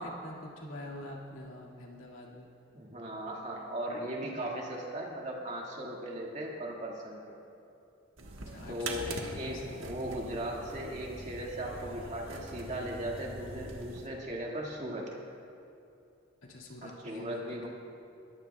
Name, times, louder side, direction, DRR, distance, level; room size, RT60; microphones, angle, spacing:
voice 1, 0.0-2.5 8.4-10.0 10.2-10.4 16.4-17.6, left 1 dB, 80° left, -3 dB, 2.2 m, -46 dB
voice 2, 2.7-7.3 8.7-15.1 17.0-17.7, right 1 dB, 35° right, -2 dB, 2.0 m, -38 dB
sound 1, 8.2-14.1, right 2 dB, 75° right, 1.4 m, -43 dB
22.0 x 14.0 x 2.4 m, 2.7 s
head